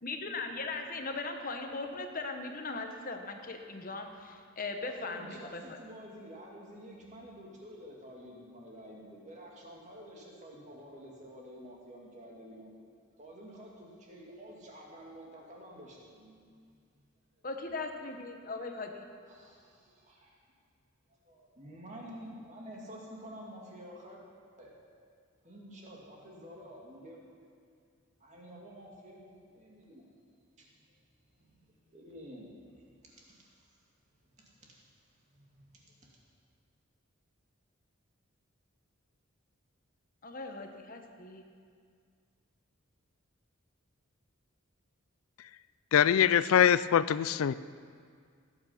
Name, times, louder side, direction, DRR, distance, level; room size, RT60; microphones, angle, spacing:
voice 1, 0.0-5.8 17.4-19.1 40.2-41.4, left 3 dB, 40° left, 4 dB, 1.1 m, -39 dB
voice 2, 4.8-12.7 13.2-16.8 19.3-20.4 21.3-24.2 24.6-24.8 25.4-27.2 28.2-30.1 30.6-30.7 31.4-31.6 31.9-32.5 33.0-33.6 34.4-34.8 35.3-35.7 36.0-36.2, equal, 35° right, -3 dB, 2.4 m, -50 dB
voice 3, 45.9-47.5, left 9 dB, 80° left, 16 dB, 0.3 m, -23 dB
18.0 x 8.7 x 5.8 m, 2.1 s
head